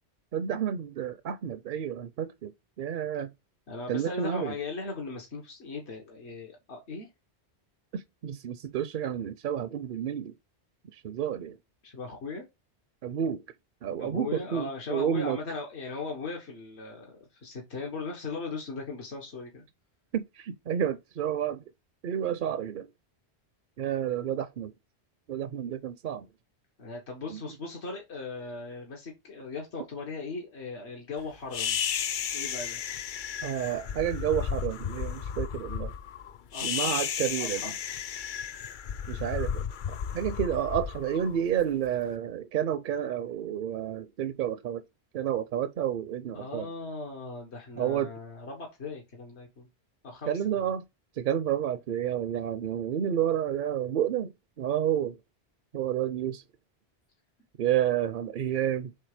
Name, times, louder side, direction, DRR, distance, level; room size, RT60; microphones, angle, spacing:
voice 1, 0.3-2.5 2.8-3.3 3.9-4.5 7.9-10.3 10.9-11.6 13.0-13.4 13.8-15.4 20.1-21.6 22.0-22.9 23.8-24.7 25.3-26.3 27.3-27.4 33.4-35.9 36.6-37.6 39.1-44.8 45.1-46.7 47.8-48.1 50.3-50.8 51.2-55.2 55.7-56.4 57.6-58.9, right 10 dB, 60° right, 0.6 m, -30 dB
voice 2, 3.7-7.1 11.8-12.5 14.0-19.6 26.8-31.8 32.3-32.8 36.5-37.0 37.4-37.8 46.3-49.7 50.0-50.7, left 3 dB, 80° left, 1.8 m, -38 dB
sound 1, 31.5-41.9, left 8 dB, 55° left, 0.6 m, -33 dB
6.7 x 3.8 x 4.9 m
omnidirectional pair, 1.1 m